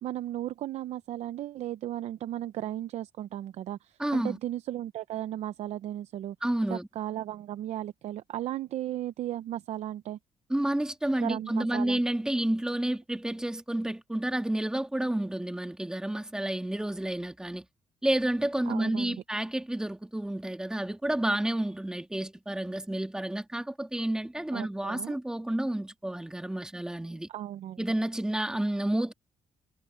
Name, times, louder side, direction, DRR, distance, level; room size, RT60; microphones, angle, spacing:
voice 1, 0.0-6.4 6.7-10.2 11.2-12.0 18.7-19.1 24.5-25.2 27.3-27.8, right 13 dB, 75° right, 0.6 m, -35 dB
voice 2, 4.0-4.4 6.4-6.9 10.5-17.6 18.0-27.3 27.8-29.1, right 1 dB, 5° right, 1.7 m, -30 dB
cardioid pair, 135°, 11 cm